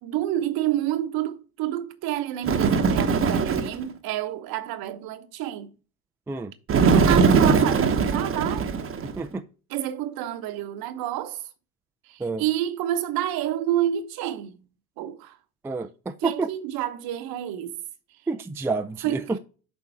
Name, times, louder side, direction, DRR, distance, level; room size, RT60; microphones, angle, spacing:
voice 1, 0.0-5.7 6.8-8.7 9.7-11.4 12.0-14.6 15.0-15.4 16.2-17.8 19.0-19.4, right 12 dB, 55° right, 1.0 m, -29 dB
Bird, 2.4-3.8 6.7-9.2, right 5 dB, 30° right, 0.9 m, -20 dB
voice 2, 15.6-16.5 18.3-19.4, right 4 dB, 5° right, 0.4 m, -29 dB
7.1 x 4.2 x 4.5 m
hypercardioid pair, 70°, 43 cm